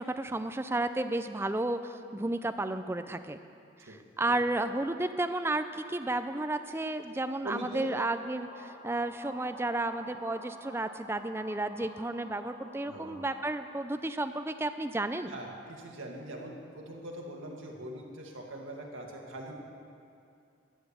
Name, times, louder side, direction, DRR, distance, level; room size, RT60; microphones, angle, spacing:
voice 1, 0.0-3.4 4.2-15.4, right 2 dB, 10° right, 9 dB, 0.4 m, -32 dB
voice 2, 7.4-7.9 12.9-13.2 15.3-19.6, right 1 dB, 85° right, 0 dB, 1.9 m, -42 dB
sound 1, 7.5-13.6, equal, 25° left, 3.9 m, -50 dB
12.5 x 8.4 x 7.5 m, 2.5 s
head